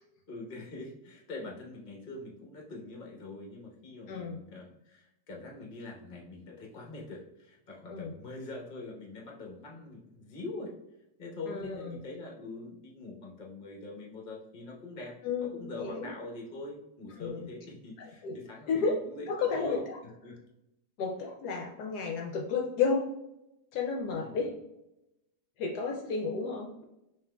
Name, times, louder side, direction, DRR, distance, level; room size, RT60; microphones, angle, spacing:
voice 1, 0.3-10.7 11.2-20.4 24.2-24.5, left 2 dB, 35° left, -1 dB, 1.0 m, -43 dB
voice 2, 4.1-4.4 7.9-8.1 11.5-11.8 15.2-16.1 17.2-17.4 18.2-18.4 18.7-19.0 19.3-19.8 21.0-23.1 23.7-24.5 25.6-26.8, left 5 dB, 75° left, 1 dB, 1.1 m, -32 dB
5.8 x 3.0 x 2.2 m, 0.88 s
omnidirectional pair, 1.9 m